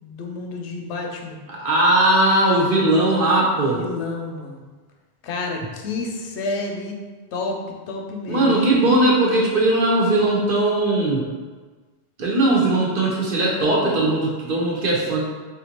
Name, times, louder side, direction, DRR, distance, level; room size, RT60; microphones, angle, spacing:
voice 1, 0.0-1.4 3.5-4.7 5.2-7.0 7.3-7.6 7.9-8.9, left 3 dB, 90° left, 1 dB, 0.9 m, -30 dB
voice 2, 1.5-3.8 8.3-11.3 12.2-15.2, right 1 dB, 55° right, -3 dB, 0.8 m, -19 dB
3.4 x 2.5 x 2.9 m, 1.4 s
omnidirectional pair, 1.1 m